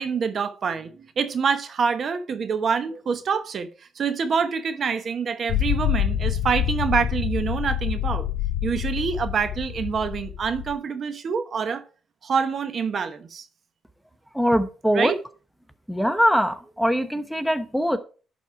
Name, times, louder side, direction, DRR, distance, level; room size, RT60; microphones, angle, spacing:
voice 1, 0.0-3.7 4.0-8.3 8.6-11.8 12.2-13.5 14.9-15.2, right 6 dB, 50° right, 0.9 m, -26 dB
sound 1, 5.5-10.7, left 10 dB, 80° left, 1.3 m, -26 dB
voice 2, 14.3-15.1 15.9-18.0, equal, ahead, 0.8 m, -22 dB
11.0 x 4.2 x 4.6 m
cardioid pair, 90°, 0 cm